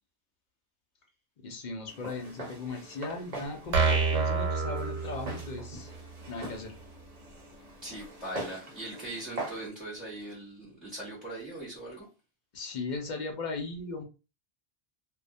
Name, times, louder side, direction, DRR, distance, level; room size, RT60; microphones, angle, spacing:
voice 1, 1.4-5.9 6.3-6.7 12.5-14.0, left 3 dB, 55° left, 0.6 m, -37 dB
Walk footsteps, 1.9-9.7, right 2 dB, 45° right, 0.8 m, -43 dB
sound 1, 3.7-5.7, right 4 dB, 80° right, 0.9 m, -27 dB
voice 2, 7.8-12.1, right 1 dB, ahead, 1.1 m, -40 dB
2.2 x 2.1 x 2.6 m
omnidirectional pair, 1.0 m